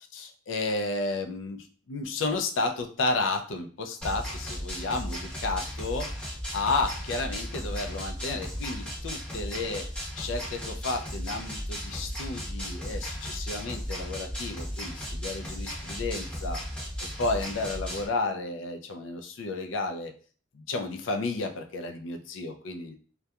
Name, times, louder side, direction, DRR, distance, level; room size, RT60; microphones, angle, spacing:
voice 1, 0.1-6.1 6.5-9.9 10.2-16.6 17.2-20.1 20.5-23.0, left 3 dB, 80° left, 6 dB, 0.4 m, -32 dB
sound 1, 4.0-18.1, equal, 5° left, 0.7 m, -35 dB
2.7 x 2.2 x 2.3 m, 0.41 s
head